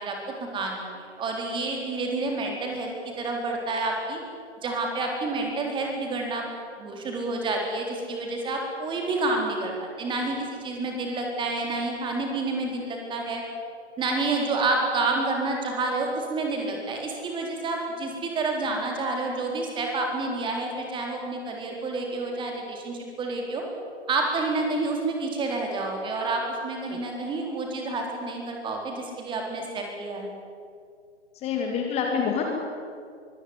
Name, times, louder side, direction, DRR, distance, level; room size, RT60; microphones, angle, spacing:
voice 1, 0.0-4.2 4.6-6.5 6.8-13.4 14.0-23.6 24.1-30.3, right 3 dB, 15° right, 1 dB, 4.3 m, -29 dB
voice 2, 31.4-32.4, left 6 dB, 20° left, 1 dB, 2.3 m, -27 dB
24.0 x 16.0 x 9.8 m, 2.2 s
figure-of-eight pair, 125°, 35 cm